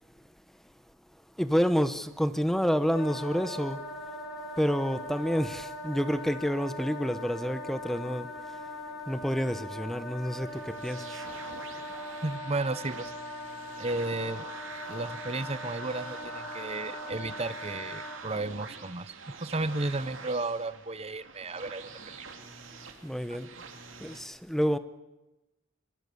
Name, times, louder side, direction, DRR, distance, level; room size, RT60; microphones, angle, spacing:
voice 1, 1.4-4.0 4.6-8.6 9.1-11.3 23.0-23.6 24.0-24.8, equal, ahead, 1.0 m, -29 dB
Wind instrument woodwind instrument, 2.9-18.2, left 1 dB, 75° left, 5.8 m, -41 dB
sound 1, 10.5-24.2, right 4 dB, 70° right, 3.0 m, -45 dB
voice 2, 12.2-13.4 13.8-14.4 14.9-22.2, right 2 dB, 30° right, 0.9 m, -34 dB
24.0 x 23.0 x 7.0 m
head